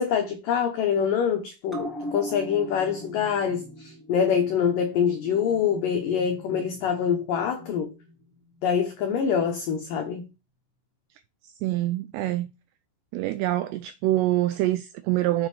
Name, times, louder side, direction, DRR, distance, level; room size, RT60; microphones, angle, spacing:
voice 1, 0.0-7.9 8.6-10.2, left 7 dB, 90° left, 1.9 m, -25 dB
sound 1, 1.7-8.6 8.9-9.0, equal, ahead, 1.9 m, -41 dB
voice 2, 11.6-12.5 13.1-15.5, right 15 dB, 85° right, 2.4 m, -25 dB
7.3 x 6.4 x 4.9 m
omnidirectional pair, 5.4 m